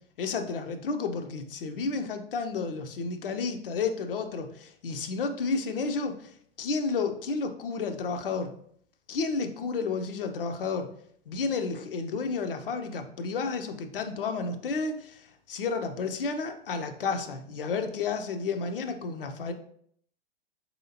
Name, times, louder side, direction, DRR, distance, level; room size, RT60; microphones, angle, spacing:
voice 1, 0.2-6.3 6.6-8.5 9.1-10.9 11.3-19.5, left 4 dB, 65° left, 7 dB, 0.6 m, -31 dB
4.7 x 2.8 x 2.8 m, 0.64 s
figure-of-eight pair, 95°, 30 cm